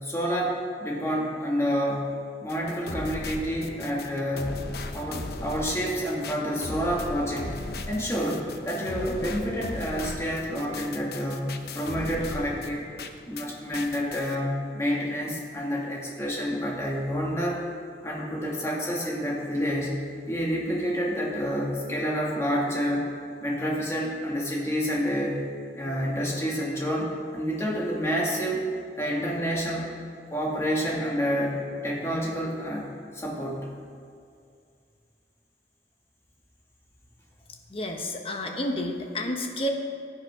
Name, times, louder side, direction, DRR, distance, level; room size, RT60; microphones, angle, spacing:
voice 1, 0.0-2.0 2.4-4.5 4.9-7.5 7.8-12.9 13.3-17.6 18.0-20.0 20.3-23.1 23.4-25.4 25.7-28.6 29.0-29.9 30.3-31.6 31.8-32.8 33.1-33.7, equal, 15° left, -4 dB, 2.2 m, -28 dB
sound 1, 2.5-13.5 13.7-14.3, left 2 dB, 60° left, 0.8 m, -37 dB
voice 2, 37.7-39.7, left 1 dB, 30° left, 3 dB, 1.2 m, -30 dB
16.0 x 9.6 x 3.7 m, 2.3 s
head